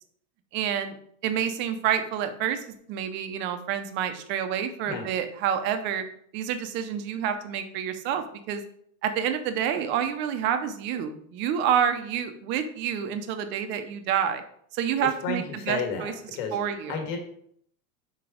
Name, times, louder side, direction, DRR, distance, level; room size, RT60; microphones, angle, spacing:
voice 1, 0.5-1.0 1.2-6.0 6.3-8.6 9.0-14.4 14.7-16.1 16.5-17.0, right 8 dB, 25° right, 8 dB, 0.5 m, -28 dB
voice 2, 15.2-17.2, left 4 dB, 50° left, 3 dB, 1.6 m, -32 dB
6.0 x 4.7 x 4.9 m, 0.65 s
supercardioid pair, 160°, 42 cm